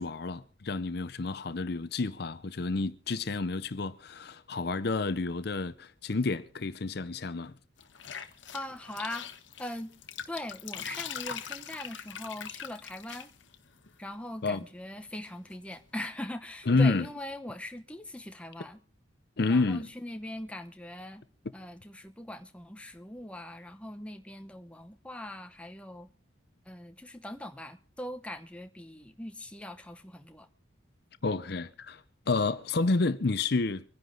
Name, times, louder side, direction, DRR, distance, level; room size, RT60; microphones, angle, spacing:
voice 1, 0.0-7.6 14.4-14.6 16.7-17.1 19.4-19.9 31.2-33.8, left 3 dB, 55° left, 0.6 m, -29 dB
sound 1, 7.8-14.0 15.0-15.8, left 8 dB, 70° left, 1.2 m, -42 dB
voice 2, 8.5-9.3 9.6-9.9 10.3-13.3 14.0-18.8 19.5-21.2 21.5-26.1 26.7-30.5, left 1 dB, 5° left, 0.9 m, -41 dB
25.0 x 10.5 x 3.9 m
head